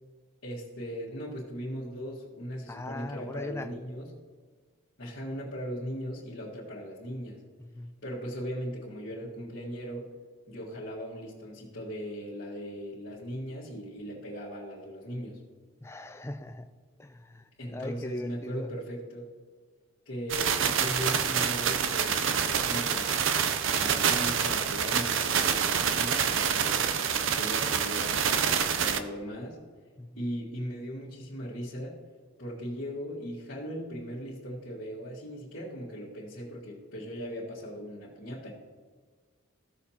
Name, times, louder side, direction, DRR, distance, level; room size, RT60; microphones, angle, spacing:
voice 1, 0.4-4.1 5.0-7.4 8.0-10.1 10.5-15.4 17.6-19.3 20.1-23.2 23.7-27.0 27.3-29.6 30.2-32.0 32.4-38.5, equal, 65° left, -9 dB, 1.8 m, -38 dB
voice 2, 2.7-3.7 7.6-7.9 15.8-16.7 17.0-18.7 30.0-30.3, left 1 dB, 10° left, 8 dB, 0.4 m, -40 dB
sound 1, 20.3-29.0, right 7 dB, 65° right, 0.5 m, -27 dB
15.0 x 6.5 x 2.9 m, 1.5 s
head